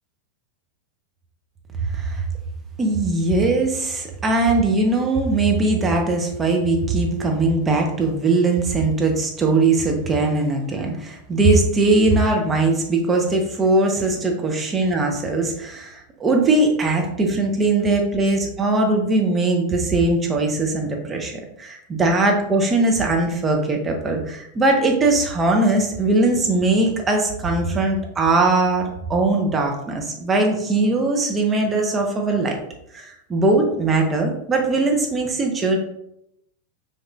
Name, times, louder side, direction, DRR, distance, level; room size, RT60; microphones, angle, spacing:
voice 1, 1.8-2.2 2.8-32.6 32.9-35.8, right 2 dB, 20° right, 1 dB, 0.8 m, -20 dB
5.1 x 4.0 x 2.4 m, 0.78 s
figure-of-eight pair, 90°, 0 cm